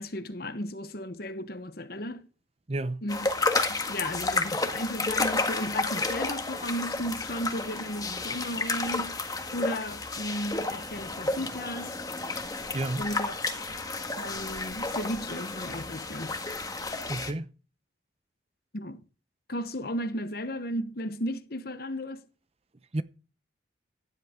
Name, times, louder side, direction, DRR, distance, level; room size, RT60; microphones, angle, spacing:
voice 1, 0.0-2.3 3.0-3.3 3.7-9.2 9.5-12.0 13.0-13.3 14.2-16.3 18.7-19.0 19.5-22.2, equal, 50° left, 1.1 m, -34 dB
voice 2, 2.7-3.0 12.7-13.1 17.1-17.5 22.9-23.0, right 2 dB, 30° right, 0.7 m, -31 dB
sound 1, 3.1-17.3, left 3 dB, 20° left, 1.6 m, -31 dB
15.5 x 10.5 x 3.7 m
head